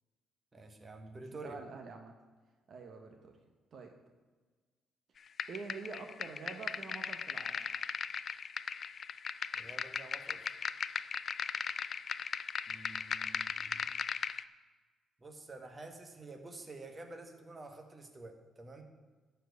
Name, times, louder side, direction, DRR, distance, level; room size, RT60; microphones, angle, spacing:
voice 1, 0.5-1.6 9.5-10.4 12.7-14.0 15.2-18.8, right 2 dB, 25° right, 5 dB, 1.5 m, -49 dB
voice 2, 1.4-2.1 2.7-3.4 3.7-3.9 5.5-7.6, right 4 dB, 55° right, 4 dB, 1.1 m, -46 dB
sound 1, 5.4-14.4, left 6 dB, 50° left, 0.4 m, -38 dB
11.5 x 4.6 x 8.2 m, 1.3 s
cardioid pair, 90°, 0 cm